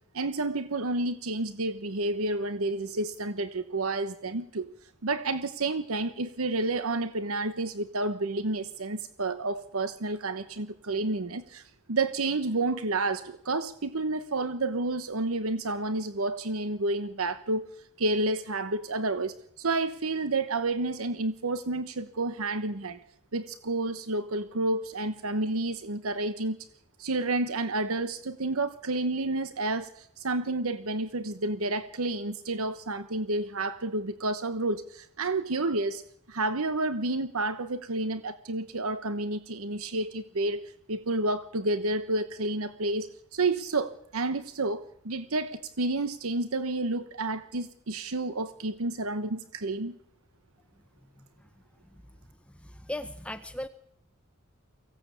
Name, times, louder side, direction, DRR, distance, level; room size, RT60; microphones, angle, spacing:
voice 1, 0.1-4.7 5.0-11.6 11.9-17.7 18.0-23.0 23.3-26.6 27.0-36.0 36.3-50.0, right 2 dB, 80° right, 12 dB, 1.0 m, -30 dB
voice 2, 51.2-51.5 52.5-53.7, left 1 dB, 5° left, 9 dB, 0.8 m, -38 dB
24.0 x 16.5 x 8.4 m, 0.76 s
head